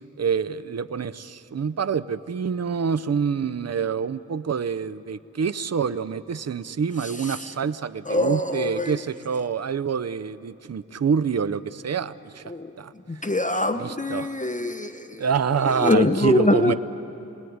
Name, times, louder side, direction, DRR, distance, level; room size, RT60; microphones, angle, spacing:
voice 1, 0.2-12.4 12.8-12.9 13.7-14.3 15.2-16.7, right 6 dB, 55° right, 14 dB, 0.7 m, -26 dB
voice 2, 7.0-7.4 8.0-8.9 12.5-12.7 13.1-15.2 15.7-16.7, left 2 dB, 25° left, 8 dB, 1.0 m, -24 dB
29.0 x 20.5 x 9.5 m, 2.8 s
cardioid pair, 55°, 31 cm